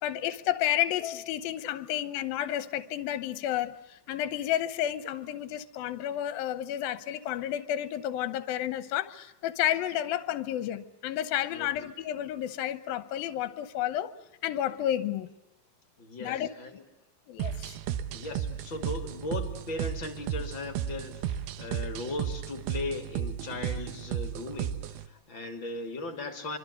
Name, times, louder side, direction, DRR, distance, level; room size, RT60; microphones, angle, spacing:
voice 1, 0.0-14.1 14.4-15.3 16.2-16.5 17.3-17.8, left 12 dB, 75° left, 2.8 m, -31 dB
voice 2, 16.0-16.8 18.1-26.6, left 2 dB, 35° left, 3.2 m, -38 dB
sound 1, 17.4-25.1, right 10 dB, 85° right, 3.1 m, -34 dB
25.5 x 25.5 x 8.3 m
omnidirectional pair, 4.3 m